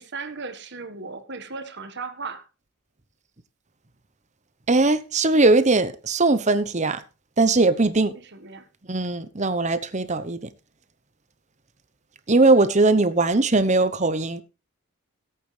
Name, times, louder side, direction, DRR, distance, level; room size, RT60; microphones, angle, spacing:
voice 1, 0.0-2.4 8.1-8.7, right 4 dB, 50° right, 1.5 m, -36 dB
voice 2, 4.7-7.0 7.4-8.1 8.9-10.5 12.3-14.4, right 3 dB, 30° right, 0.9 m, -20 dB
17.5 x 8.5 x 3.3 m
head